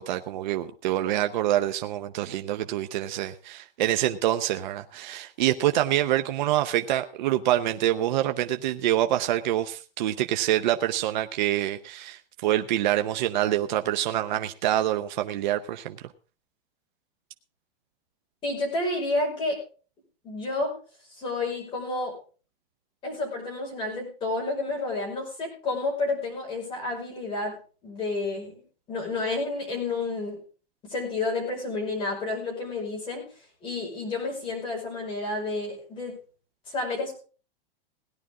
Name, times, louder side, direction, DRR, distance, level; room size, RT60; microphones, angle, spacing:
voice 1, 0.0-16.0, right 13 dB, 50° right, 0.7 m, -26 dB
voice 2, 18.4-19.6 20.2-20.8 21.1-22.2 23.0-27.6 27.8-28.5 28.9-30.4 30.9-33.3 33.6-36.1 36.7-37.2, left 2 dB, 15° left, 5.3 m, -30 dB
17.5 x 10.5 x 3.6 m
supercardioid pair, 170°, 29 cm